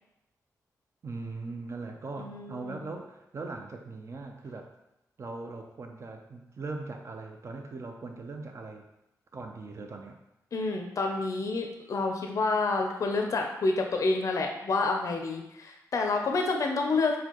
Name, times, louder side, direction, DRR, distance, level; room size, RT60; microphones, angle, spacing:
voice 1, 1.0-4.7 5.2-8.8 9.3-10.2, right 3 dB, 45° right, 4 dB, 0.5 m, -40 dB
voice 2, 2.2-2.8 10.5-17.2, left 3 dB, 55° left, 3 dB, 0.4 m, -28 dB
4.3 x 2.2 x 2.9 m, 0.88 s
cardioid pair, 80°, 7 cm